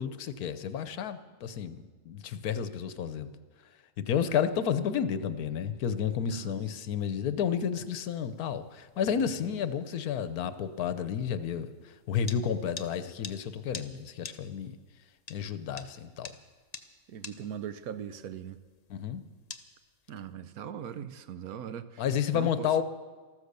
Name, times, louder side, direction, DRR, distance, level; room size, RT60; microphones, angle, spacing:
voice 1, 0.0-3.3 4.0-11.7 12.1-14.7 15.3-16.3 18.9-19.2 22.0-22.8, left 8 dB, 80° left, 12 dB, 1.3 m, -31 dB
sound 1, 7.7-20.3, left 5 dB, 35° left, 0.7 m, -50 dB
voice 2, 17.1-18.6 20.1-22.0 22.3-22.8, right 8 dB, 75° right, 12 dB, 1.2 m, -40 dB
14.0 x 13.5 x 6.7 m, 1.4 s
omnidirectional pair, 1.6 m